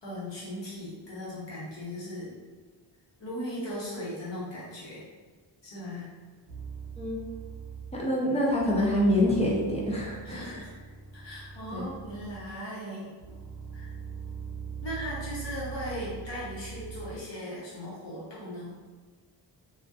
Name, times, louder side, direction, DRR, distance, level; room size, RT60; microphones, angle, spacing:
voice 1, 0.0-2.3 3.2-5.1 5.6-6.1 10.2-10.7 11.1-13.1 13.7-13.9 14.8-18.8, left 1 dB, 60° left, -7 dB, 1.0 m, -38 dB
sound 1, 6.5-8.2 8.6-12.7 13.2-17.3, right 7 dB, 40° right, 0.5 m, -42 dB
voice 2, 8.0-10.6 11.7-11.9, left 1 dB, 15° left, -4 dB, 0.5 m, -26 dB
2.5 x 2.4 x 2.3 m, 1.5 s
wide cardioid pair, 120°, 49 cm